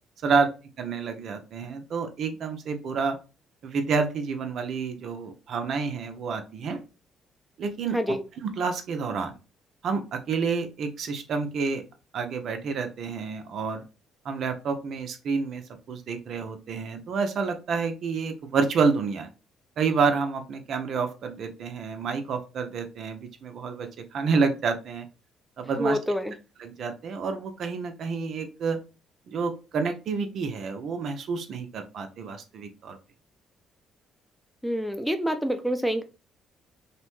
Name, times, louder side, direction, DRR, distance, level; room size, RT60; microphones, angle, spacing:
voice 1, 0.8-3.2 3.6-6.8 7.6-7.9 8.6-9.4 9.8-11.8 12.1-13.8 14.2-15.6 15.9-19.3 19.8-25.1 25.6-26.0 26.6-28.8 29.3-33.0, right 5 dB, 65° right, 7 dB, 0.4 m, -29 dB
voice 2, 25.8-26.3 34.6-36.0, equal, ahead, 8 dB, 0.5 m, -27 dB
2.7 x 2.1 x 3.0 m, 0.31 s
supercardioid pair, 65°, 0 cm